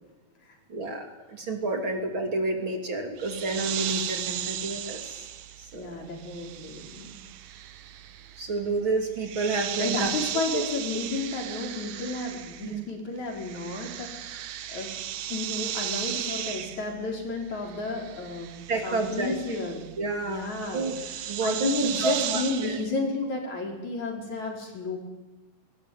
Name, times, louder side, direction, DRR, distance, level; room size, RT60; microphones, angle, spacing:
voice 1, 0.7-5.2 5.6-6.0 8.4-10.1 10.5-10.7 12.6-12.8 18.7-19.3 20.0-20.9 21.2-22.8, right 3 dB, 40° right, 3 dB, 3.4 m, -30 dB
sound 1, 3.2-12.9 13.2-22.9, right 11 dB, 65° right, 1.5 m, -36 dB
voice 2, 5.7-7.2 9.8-14.9 15.3-19.8 20.2-20.9 21.4-25.0, left 3 dB, 70° left, 1 dB, 5.9 m, -32 dB
20.5 x 20.0 x 9.5 m, 1.1 s
omnidirectional pair, 3.5 m